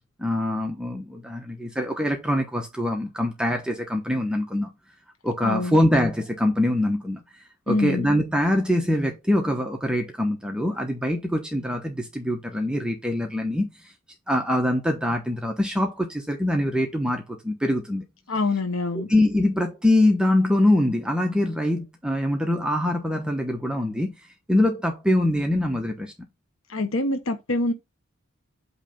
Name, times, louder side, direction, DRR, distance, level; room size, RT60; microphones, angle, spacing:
voice 1, 0.2-4.7 5.2-13.9 14.3-18.0 18.9-26.1, left 1 dB, 5° right, 1.0 m, -24 dB
voice 2, 5.4-5.8 7.7-8.1 18.3-19.1 26.7-27.7, left 2 dB, 85° left, 1.1 m, -25 dB
8.2 x 3.3 x 5.1 m
head